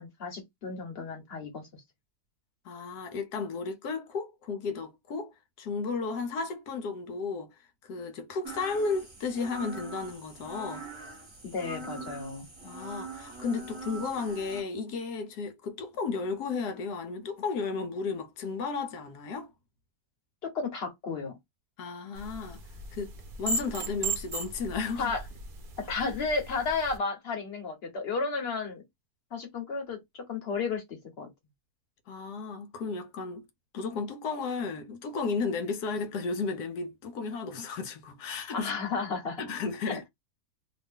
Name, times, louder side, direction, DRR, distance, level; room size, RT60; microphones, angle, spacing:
voice 1, 0.0-1.6 11.4-12.5 20.4-21.4 25.0-25.2 25.8-28.8 29.3-31.3 38.5-39.4 39.9-40.0, left 4 dB, 40° left, 1.3 m, -33 dB
voice 2, 2.6-7.5 7.8-10.9 12.6-19.5 21.8-22.6 22.9-23.1 23.4-25.1 32.1-33.5 33.7-38.7 39.4-40.0, left 4 dB, 75° left, 1.2 m, -34 dB
sound 1, 8.4-14.6, right 2 dB, 20° right, 1.0 m, -42 dB
sound 2, 22.1-27.0, right 3 dB, 50° right, 0.6 m, -37 dB
2.8 x 2.5 x 3.5 m
omnidirectional pair, 1.7 m